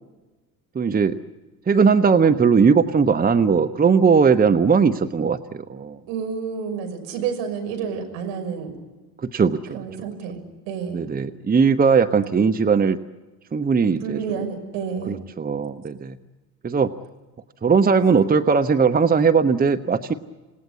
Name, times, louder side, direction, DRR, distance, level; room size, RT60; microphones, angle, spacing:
voice 1, 0.7-1.2 1.7-6.0 9.2-9.8 10.9-13.0 13.5-14.2 15.1-16.2 16.6-16.9 17.6-20.1, right 5 dB, 20° right, 11 dB, 1.0 m, -19 dB
voice 2, 6.1-8.7 9.7-11.1 14.0-15.2, right 6 dB, 65° right, 4 dB, 6.2 m, -30 dB
28.0 x 19.0 x 9.7 m, 1.2 s
hypercardioid pair, 70°, 49 cm